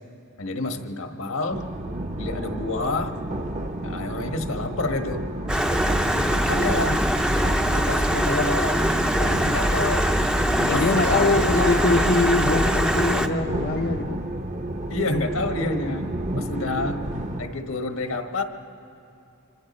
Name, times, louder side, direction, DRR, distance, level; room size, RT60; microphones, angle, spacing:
voice 1, 0.4-1.7 2.2-3.2 3.8-5.3 6.0-7.0 7.7-10.1 10.7-11.5 14.9-17.0 17.4-18.4, left 3 dB, 80° left, 5 dB, 1.4 m, -28 dB
sound 1, 1.5-17.5, right 1 dB, 35° right, 0.8 m, -31 dB
Stream, 5.5-13.3, equal, 5° right, 0.5 m, -23 dB
voice 2, 6.1-6.9 10.6-14.2, left 3 dB, 45° left, 4 dB, 0.6 m, -24 dB
sound 2, 11.0-15.3 17.5-17.6, right 1 dB, 60° right, 1.9 m, -39 dB
26.5 x 25.0 x 4.3 m, 2.7 s
head